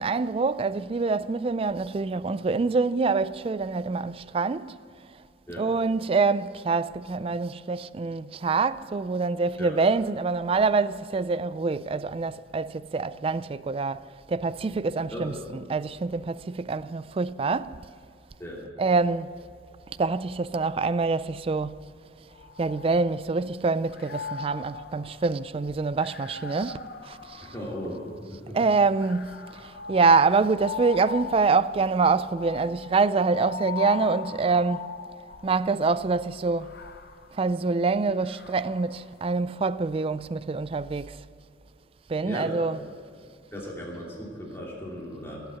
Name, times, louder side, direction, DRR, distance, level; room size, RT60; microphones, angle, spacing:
voice 1, 0.0-4.7 5.6-14.0 14.3-15.3 15.7-17.7 18.8-19.3 20.0-21.8 22.6-27.5 28.5-29.3 29.6-34.9 35.4-36.7 37.3-41.2 42.1-42.8, right 4 dB, 30° right, 0.3 m, -25 dB
voice 2, 15.1-15.5 18.4-18.6 27.4-28.6 42.2-42.6 42.8-42.9 43.5-45.6, equal, 15° left, 2.9 m, -37 dB
sound 1, 22.3-23.5 23.9-28.3 29.0-35.6 36.4-39.0, left 6 dB, 55° left, 0.8 m, -40 dB
17.5 x 8.1 x 8.1 m
head